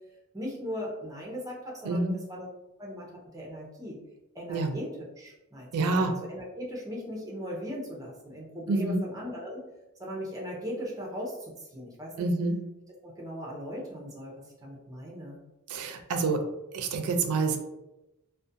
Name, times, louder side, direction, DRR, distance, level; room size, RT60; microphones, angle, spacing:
voice 1, 0.3-2.5 2.8-4.0 4.3-9.7 10.0-12.3 13.0-15.4, equal, 15° right, -3 dB, 0.5 m, -38 dB
voice 2, 1.8-2.2 4.5-4.7 5.7-6.1 8.7-9.0 12.2-12.6 15.7-16.4 16.7-17.6, right 3 dB, 80° right, 6 dB, 0.4 m, -27 dB
2.4 x 2.1 x 2.5 m, 0.97 s
head